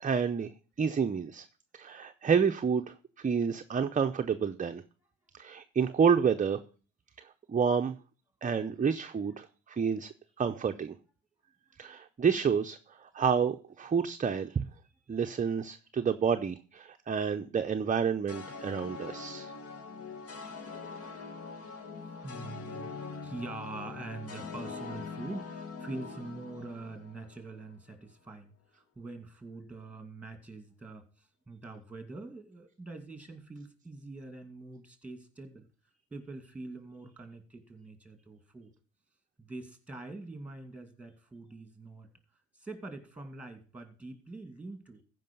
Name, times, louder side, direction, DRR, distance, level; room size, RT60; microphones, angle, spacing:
voice 1, 0.0-0.5 0.8-1.4 1.7-4.8 5.3-6.6 7.2-7.9 8.4-11.0 11.8-14.6 15.1-19.5, right 6 dB, 25° right, 7 dB, 0.6 m, -29 dB
sound 1, 18.3-27.6, left 4 dB, 50° left, 1.4 m, -43 dB
voice 2, 22.2-31.1 31.5-35.7 36.1-38.7 39.4-42.1 42.5-45.0, right 2 dB, 5° right, 7 dB, 2.4 m, -44 dB
14.5 x 5.4 x 5.4 m, 0.39 s
cardioid pair, 90°, 30 cm